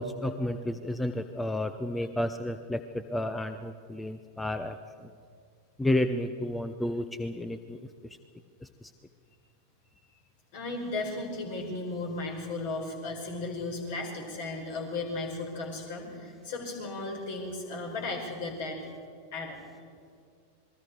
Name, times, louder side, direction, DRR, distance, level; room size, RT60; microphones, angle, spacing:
voice 1, 0.0-2.8 3.1-4.7 5.8-7.8, left 1 dB, 5° left, 10 dB, 0.8 m, -31 dB
voice 2, 10.5-18.8 19.3-19.6, left 2 dB, 50° left, 2 dB, 5.0 m, -35 dB
27.5 x 21.0 x 4.6 m, 2.3 s
figure-of-eight pair, 90°, 0 cm